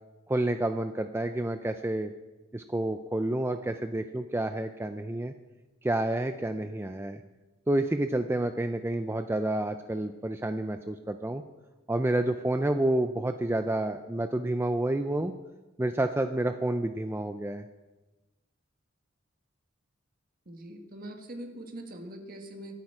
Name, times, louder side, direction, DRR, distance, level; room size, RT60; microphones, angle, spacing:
voice 1, 0.3-2.1 2.5-5.3 5.8-7.2 7.7-11.4 11.9-15.3 15.8-17.6, right 1 dB, 10° right, 8 dB, 0.4 m, -29 dB
voice 2, 20.5-22.7, right 1 dB, 45° right, 4 dB, 1.8 m, -42 dB
23.0 x 8.8 x 4.9 m, 1.2 s
head